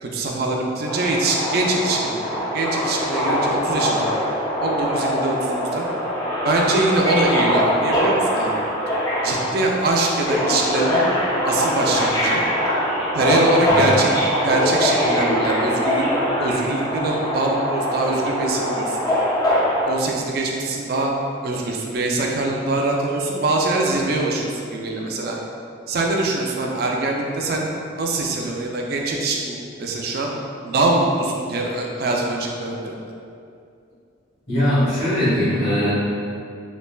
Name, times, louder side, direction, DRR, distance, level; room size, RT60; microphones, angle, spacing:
voice 1, 0.0-4.1 4.6-5.9 6.4-8.6 9.2-11.1 11.4-12.4 13.1-19.0 19.8-21.1 21.4-25.4 25.9-30.3 30.6-33.0, right 2 dB, 50° right, 0 dB, 0.3 m, -23 dB
Subway metro underground, 0.9-19.8, equal, 20° left, 0.4 m, -22 dB
voice 2, 34.5-35.9, equal, 75° left, -11 dB, 1.4 m, -20 dB
3.1 x 2.4 x 2.2 m, 2.5 s
head